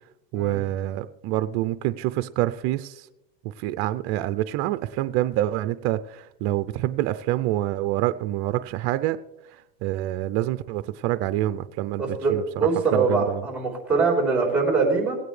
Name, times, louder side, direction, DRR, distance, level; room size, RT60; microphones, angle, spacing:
voice 1, 0.3-3.1 3.4-9.2 9.5-12.4 12.9-13.4, right 14 dB, 50° right, 12 dB, 0.5 m, -27 dB
voice 2, 12.0-15.2, right 4 dB, 5° right, 0 dB, 3.5 m, -23 dB
18.5 x 9.0 x 3.2 m, 0.88 s
supercardioid pair, 130°, 32 cm